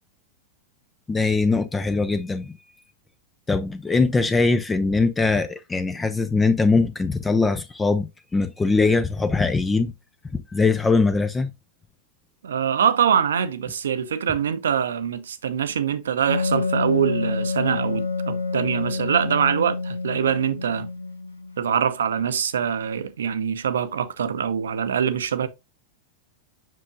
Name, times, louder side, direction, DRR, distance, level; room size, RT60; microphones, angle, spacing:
voice 1, 1.1-2.5 3.5-9.9 10.3-11.5, left 3 dB, 15° left, 0.5 m, -21 dB
voice 2, 12.4-20.9 21.6-25.5, right 8 dB, 65° right, 0.7 m, -24 dB
Wind instrument woodwind instrument, 16.3-21.7, left 4 dB, 85° left, 1.0 m, -27 dB
7.6 x 6.2 x 2.5 m
figure-of-eight pair, 90°, 0 cm